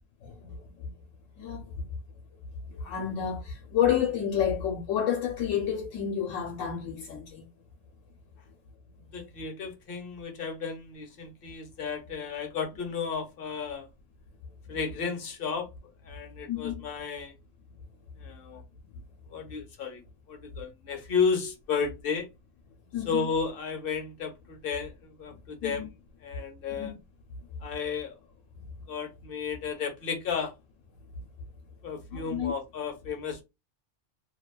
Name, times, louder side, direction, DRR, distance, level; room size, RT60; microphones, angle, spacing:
voice 1, 0.2-0.9 1.4-1.6 2.7-7.4 16.5-16.8 22.9-23.3 25.6-25.9 26.8-26.9 32.1-32.5, left 9 dB, 85° left, 1.0 m, -30 dB
voice 2, 9.1-13.9 14.7-15.7 16.0-17.3 18.2-18.6 19.3-20.0 20.3-22.3 23.0-25.9 26.2-26.9 27.6-28.2 28.9-30.5 31.8-33.4, left 5 dB, 55° left, 0.8 m, -33 dB
2.6 x 2.2 x 2.2 m
omnidirectional pair, 1.3 m